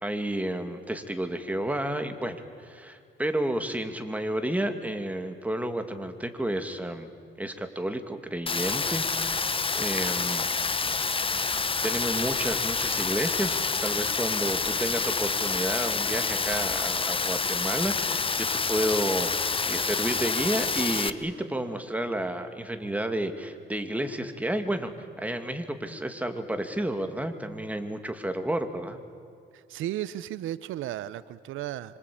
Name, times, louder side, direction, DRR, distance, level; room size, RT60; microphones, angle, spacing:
voice 1, 0.0-7.1 7.4-10.5 11.4-29.0, right 1 dB, 5° right, 7 dB, 2.6 m, -31 dB
Rain, 8.5-21.1, left 4 dB, 25° left, 1.1 m, -28 dB
voice 2, 29.5-32.0, right 13 dB, 85° right, 16 dB, 0.8 m, -34 dB
25.5 x 25.5 x 8.8 m, 2.4 s
cardioid pair, 90°, 20 cm